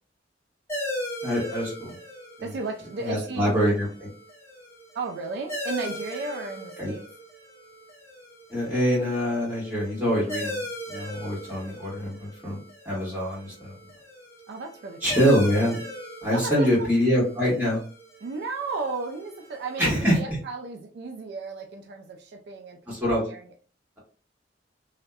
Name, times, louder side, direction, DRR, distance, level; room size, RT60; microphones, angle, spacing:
sound 1, 0.7-19.8, equal, 15° left, 0.6 m, -39 dB
voice 1, 1.2-1.9 2.4-2.5 3.0-4.1 6.8-6.9 8.5-12.6 12.8-13.7 15.0-15.8 16.2-17.8 19.8-20.4 22.9-23.2, equal, 10° right, -7 dB, 1.3 m, -25 dB
voice 2, 2.4-3.6 4.9-7.0 14.5-15.3 16.3-16.9 18.2-23.0 23.2-23.5, right 3 dB, 60° right, 4 dB, 0.3 m, -34 dB
2.6 x 2.1 x 2.3 m, 0.40 s
head